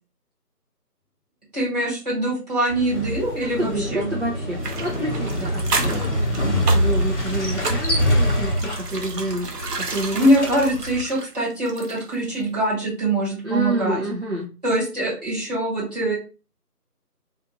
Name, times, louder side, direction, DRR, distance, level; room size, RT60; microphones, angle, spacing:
voice 1, 1.5-4.1 10.1-14.0 14.6-16.2, right 1 dB, 25° right, -8 dB, 1.3 m, -23 dB
Motorcycle, 2.7-11.0, equal, 45° left, 0.7 m, -25 dB
voice 2, 3.4-6.3 6.5-9.5 9.8-10.5 13.4-14.5, right 1 dB, 50° right, -2 dB, 0.5 m, -28 dB
sound 1, 4.6-12.2 12.5-12.6, right 3 dB, 75° right, 0.8 m, -32 dB
2.5 x 2.4 x 2.8 m, 0.34 s
figure-of-eight pair, 170°, 48 cm